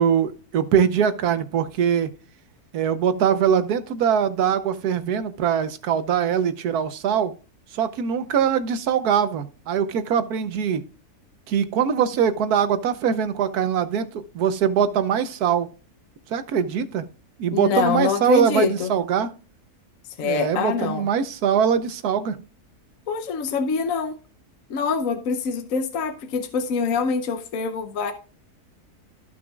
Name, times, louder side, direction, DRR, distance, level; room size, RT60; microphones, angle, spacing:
voice 1, 0.0-2.1 2.7-7.3 7.7-10.8 11.5-15.7 16.3-17.1 17.4-19.3 20.2-22.4, right 8 dB, 80° right, 1.3 m, -22 dB
voice 2, 17.5-18.9 20.2-21.1 23.1-24.2 24.7-28.1, left 5 dB, 65° left, 1.1 m, -25 dB
14.5 x 6.1 x 2.3 m
omnidirectional pair, 1.6 m